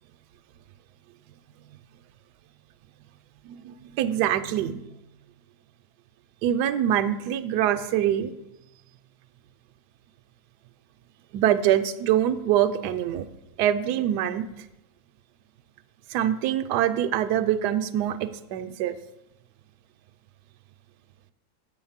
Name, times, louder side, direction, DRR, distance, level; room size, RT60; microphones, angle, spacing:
voice 1, 3.4-4.9 6.4-8.3 11.3-13.3 13.6-14.5 16.1-19.0, right 11 dB, 75° right, 10 dB, 1.1 m, -24 dB
8.5 x 5.1 x 7.2 m, 0.91 s
omnidirectional pair, 1.9 m